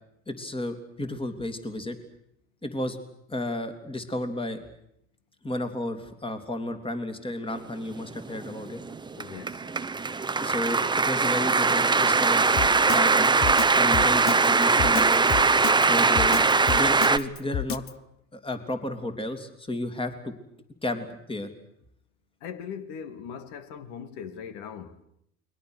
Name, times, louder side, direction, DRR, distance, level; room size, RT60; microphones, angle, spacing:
voice 1, 0.3-2.0 2.6-3.0 3.3-4.6 5.4-8.8 10.4-12.4 12.8-13.3 13.8-15.3 15.9-17.8 18.3-20.3 20.8-21.5, left 1 dB, 10° left, 3.2 m, -32 dB
sound 1, 7.9-17.2, right 4 dB, 10° right, 0.9 m, -21 dB
voice 2, 9.2-9.6 12.8-12.9 16.4-16.5 22.4-24.9, left 7 dB, 65° left, 2.5 m, -40 dB
Drum kit, 12.6-17.9, left 10 dB, 30° left, 0.9 m, -30 dB
29.5 x 22.0 x 6.5 m
hypercardioid pair, 85°, 42 cm